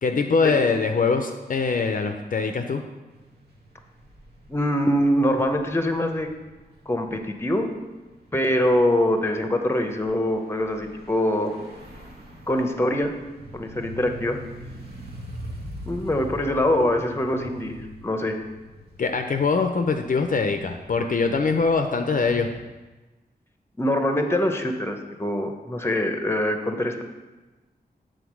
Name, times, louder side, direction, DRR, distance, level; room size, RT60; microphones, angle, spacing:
voice 1, 0.0-2.8 19.0-22.5, left 4 dB, 55° left, 5 dB, 0.5 m, -23 dB
sound 1, 3.1-22.6, right 1 dB, 75° right, 1.2 m, -43 dB
voice 2, 4.5-6.3 6.9-7.7 8.3-11.6 12.5-13.1 13.5-14.4 15.9-18.4 23.8-27.0, left 1 dB, 15° left, 5 dB, 0.7 m, -23 dB
7.1 x 3.8 x 6.2 m, 1.2 s
wide cardioid pair, 95°, 17 cm